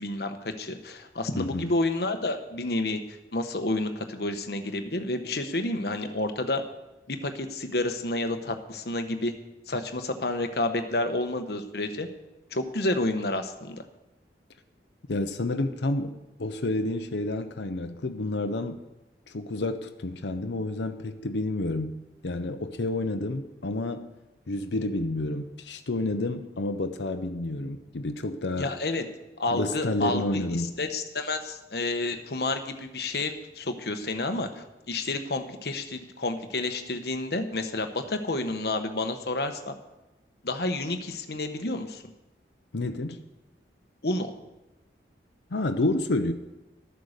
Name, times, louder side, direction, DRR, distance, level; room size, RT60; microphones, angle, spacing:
voice 1, 0.0-3.0 3.3-6.6 7.1-9.3 9.7-12.1 12.5-13.8 28.6-29.0 29.4-39.7 40.4-42.0 44.0-44.4, left 2 dB, 60° left, 7 dB, 1.2 m, -30 dB
voice 2, 1.3-1.7 15.1-18.9 19.3-24.1 24.5-28.7 29.5-30.7 42.7-43.3 45.5-46.3, left 2 dB, 80° left, 8 dB, 0.8 m, -30 dB
12.0 x 9.3 x 6.6 m, 1.0 s
head